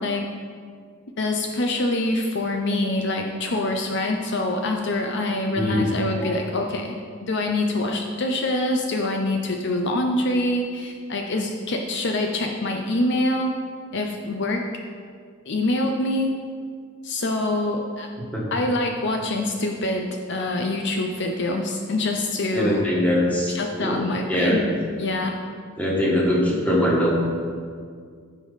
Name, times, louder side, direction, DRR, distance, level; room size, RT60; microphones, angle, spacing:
voice 1, 1.2-6.9 7.2-13.5 13.9-14.6 15.5-16.4 17.0-18.1 18.5-22.8 23.5-24.6 25.0-25.4, left 2 dB, 55° left, 3 dB, 0.6 m, -25 dB
voice 2, 5.6-5.9 6.2-6.3 18.3-18.5 22.5-24.0 24.3-24.7 25.8-27.1, left 1 dB, 5° left, -4 dB, 1.8 m, -22 dB
15.0 x 5.2 x 4.1 m, 2.1 s
head